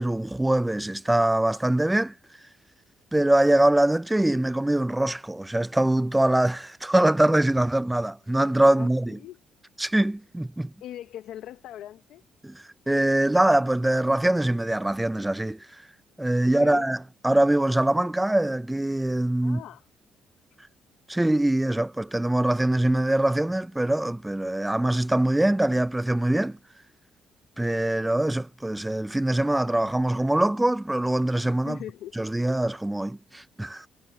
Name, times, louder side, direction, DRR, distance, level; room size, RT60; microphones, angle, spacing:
voice 1, 0.0-2.1 3.1-9.2 9.8-10.7 12.4-15.7 16.2-19.6 21.1-26.6 27.6-31.8 32.2-33.9, right 1 dB, 10° right, 0.3 m, -23 dB
voice 2, 8.7-9.4 10.8-12.2 16.4-16.9 19.4-19.8 31.6-32.1, left 12 dB, 85° left, 0.8 m, -40 dB
cardioid pair, 90°, 0 cm